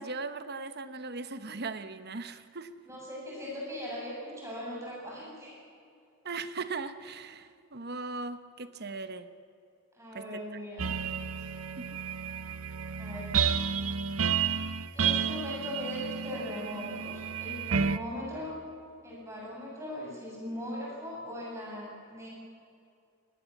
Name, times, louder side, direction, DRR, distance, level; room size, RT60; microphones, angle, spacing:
voice 1, 0.0-2.8 6.2-9.3 10.1-10.4 11.9-12.0, right 3 dB, 50° right, 11 dB, 1.2 m, -38 dB
voice 2, 2.9-5.5 9.9-10.9 13.0-13.3 14.9-18.6 19.0-22.3, left 1 dB, 15° right, -4 dB, 8.0 m, -39 dB
sound 1, 10.8-18.0, right 6 dB, 85° right, 0.8 m, -31 dB
24.5 x 19.5 x 7.4 m, 2.5 s
head